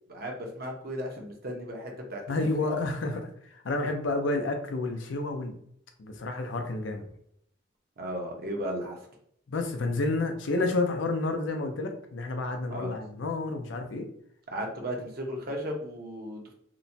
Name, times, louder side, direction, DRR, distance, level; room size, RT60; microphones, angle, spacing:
voice 1, 0.1-2.7 8.0-9.0 12.7-13.0 14.5-16.5, equal, 55° right, 1 dB, 0.7 m, -35 dB
voice 2, 2.3-5.5 6.0-7.1 9.5-14.1, left 2 dB, 80° left, 4 dB, 0.5 m, -30 dB
2.9 x 2.1 x 2.6 m, 0.69 s
head